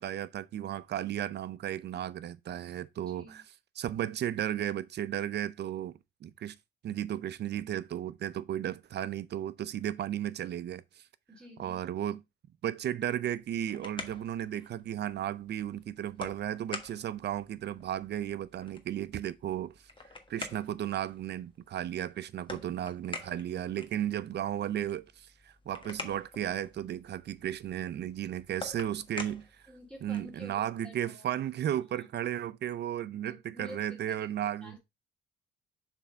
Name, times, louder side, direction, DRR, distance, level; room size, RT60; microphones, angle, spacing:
voice 1, 0.0-3.4 3.8-6.6 6.8-11.0 11.6-12.2 12.6-19.7 20.3-29.5 30.0-34.8, right 11 dB, 60° right, 0.6 m, -34 dB
voice 2, 3.1-3.4 11.3-12.2 22.6-22.7 29.7-31.4 32.0-32.1 33.2-34.3 34.6-34.8, left 1 dB, 5° left, 2.8 m, -50 dB
sound 1, 13.4-30.4, left 3 dB, 25° left, 1.3 m, -47 dB
6.8 x 3.5 x 5.0 m
cardioid pair, 90°, 20 cm